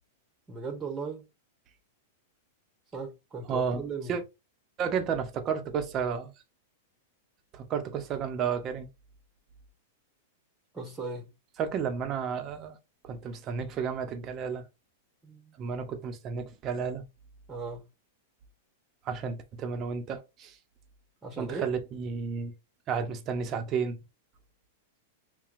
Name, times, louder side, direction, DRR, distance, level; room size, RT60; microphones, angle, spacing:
voice 1, 0.5-1.2 2.9-4.2 10.7-11.3 15.2-15.4 17.5-17.8 21.2-21.7, right 4 dB, 15° right, 1.1 m, -37 dB
voice 2, 3.4-4.2 4.8-6.3 7.5-8.9 11.6-12.8 13.0-14.7 15.6-17.0 19.0-20.6 21.4-22.5 22.9-24.0, right 6 dB, 35° right, 0.8 m, -32 dB
5.6 x 2.3 x 2.5 m
hypercardioid pair, 115°, 0 cm